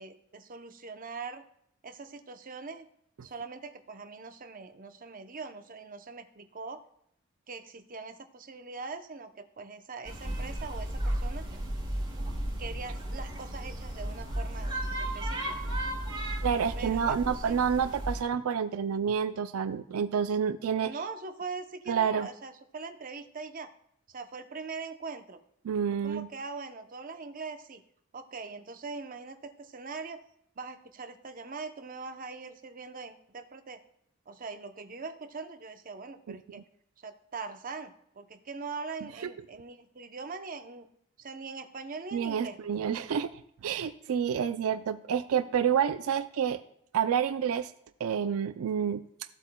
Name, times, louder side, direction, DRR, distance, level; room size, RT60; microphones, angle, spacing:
voice 1, 0.0-1.4 1.8-2.9 3.2-6.8 7.5-11.5 12.6-15.5 16.8-17.6 20.8-23.7 24.1-25.4 26.0-27.8 28.1-30.2 30.6-33.8 34.3-36.6 37.0-40.9 41.2-42.6, right 4 dB, 40° right, 7 dB, 0.7 m, -42 dB
sound 1, 10.0-18.2, right 1 dB, 25° right, 3.4 m, -34 dB
voice 2, 16.4-21.0 21.9-22.3 25.6-26.3 36.3-36.6 42.1-43.3 43.6-46.6 46.9-47.7 48.0-49.0, right 7 dB, 80° right, 11 dB, 0.4 m, -29 dB
15.5 x 8.0 x 2.2 m, 0.71 s
head